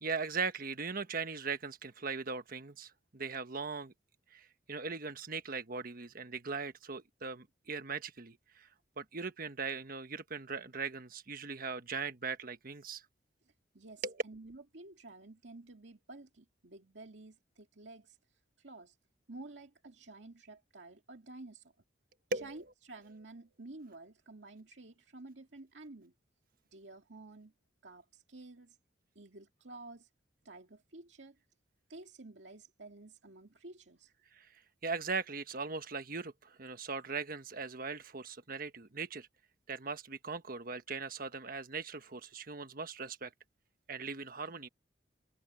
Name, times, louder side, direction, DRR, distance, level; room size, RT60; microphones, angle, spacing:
voice 1, 0.0-3.9 4.3-8.7 9.0-13.0 14.0-14.2 22.3-22.5 34.3-34.5 34.8-39.3 39.7-43.3 43.9-44.7, right 4 dB, 50° right, 1.3 m, -39 dB
voice 2, 13.7-18.2 18.6-19.0 19.3-21.7 22.4-26.1 26.7-27.5 27.8-28.8 29.2-30.1 30.4-31.4 31.9-34.1, right 2 dB, 70° right, 2.3 m, -51 dB
head